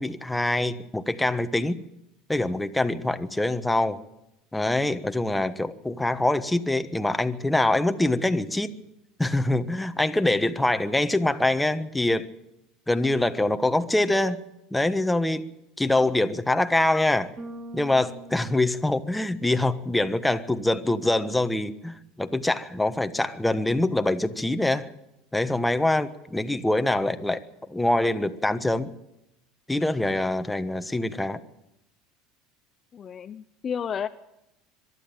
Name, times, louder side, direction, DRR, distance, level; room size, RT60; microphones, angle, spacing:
voice 1, 0.0-1.8 2.3-4.0 4.5-8.7 9.2-12.3 12.9-14.4 14.7-15.4 15.8-17.3 17.7-24.9 25.3-27.4 27.7-28.9 29.7-31.4, left 2 dB, 5° left, 9 dB, 1.3 m, -24 dB
Bass guitar, 17.4-19.7, right 1 dB, 20° right, 5.0 m, -43 dB
voice 2, 32.9-34.1, left 7 dB, 35° left, 10 dB, 0.7 m, -32 dB
23.0 x 12.5 x 9.1 m, 0.87 s
supercardioid pair, 110°, 0 cm